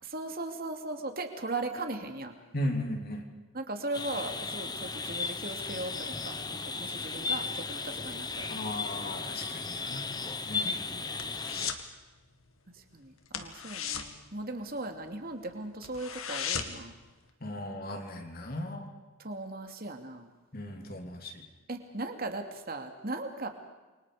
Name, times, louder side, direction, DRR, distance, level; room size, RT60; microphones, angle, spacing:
voice 1, 0.0-2.3 3.5-8.5 10.6-11.2 12.7-16.9 19.2-20.3 21.7-23.5, right 2 dB, 45° right, 5 dB, 2.7 m, -38 dB
voice 2, 2.5-3.2 8.5-10.0 10.5-10.7 17.4-18.9 20.5-21.4, left 1 dB, 45° left, 3 dB, 3.4 m, -36 dB
sound 1, 3.9-11.7, left 4 dB, 20° left, 1.1 m, -35 dB
sound 2, 10.4-11.9 12.2-12.5 12.8-12.9 13.3-15.1 15.5-15.6 15.8-16.9 17.3-17.4, left 8 dB, 90° left, 2.2 m, -37 dB
29.0 x 24.5 x 5.1 m, 1.2 s
head